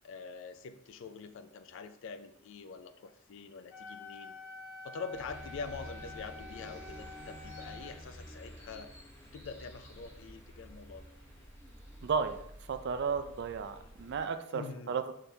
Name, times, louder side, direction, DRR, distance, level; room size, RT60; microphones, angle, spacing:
voice 1, 0.0-4.3 4.8-8.9 9.3-11.1 14.5-14.9, left 5 dB, 60° left, 11 dB, 0.4 m, -45 dB
Wind instrument woodwind instrument, 3.7-7.9, left 3 dB, 45° left, 1.3 m, -48 dB
sound 1, 5.1-14.2, equal, 10° left, 0.7 m, -50 dB
voice 2, 12.0-12.4 12.7-15.1, right 5 dB, 55° right, 9 dB, 0.4 m, -33 dB
5.8 x 3.3 x 2.7 m, 0.72 s
head